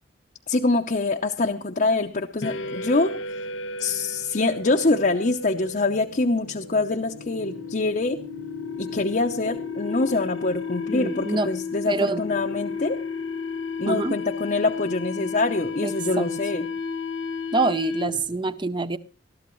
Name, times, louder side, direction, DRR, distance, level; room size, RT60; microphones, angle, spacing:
voice 1, 0.5-3.4 3.8-8.2 8.8-13.0 13.8-16.7, left 3 dB, 40° left, 2 dB, 0.7 m, -25 dB
sound 1, 2.4-18.3, left 4 dB, 85° left, 1.3 m, -33 dB
voice 2, 10.9-11.5 11.9-12.2 13.8-14.2 15.8-16.3 17.5-19.0, right 3 dB, 25° right, 15 dB, 0.6 m, -25 dB
20.5 x 13.5 x 3.1 m, 0.34 s
head